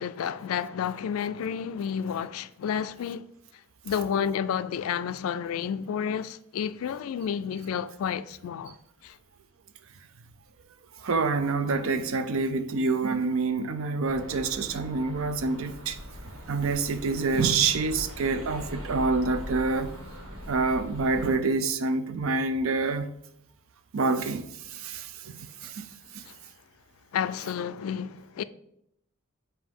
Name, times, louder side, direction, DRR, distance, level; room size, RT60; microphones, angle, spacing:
voice 1, 0.0-3.3 3.8-8.7 9.0-9.2 26.3-26.4 27.1-28.4, left 8 dB, 80° left, 0.3 m, -30 dB
voice 2, 11.0-16.0 16.5-19.9 20.5-23.1 23.9-24.5 24.8-25.4 25.6-25.8, right 3 dB, 70° right, 0.5 m, -27 dB
sound 1, 14.1-21.3, equal, 90° right, 1.7 m, -41 dB
7.2 x 2.7 x 5.3 m
head